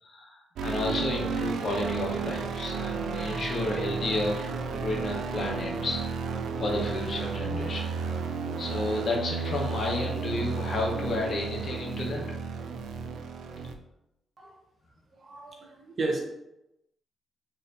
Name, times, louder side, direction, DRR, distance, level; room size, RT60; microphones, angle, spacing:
voice 1, 0.0-6.0 6.6-7.9 8.2-8.3 8.6-12.2, left 2 dB, 50° left, -1 dB, 0.9 m, -31 dB
sound 1, 0.6-13.7, right 5 dB, 80° right, 0.3 m, -33 dB
voice 2, 15.1-16.2, right 2 dB, 45° right, 0 dB, 0.8 m, -33 dB
4.1 x 2.6 x 2.6 m, 0.88 s
cardioid pair, 110°, 0 cm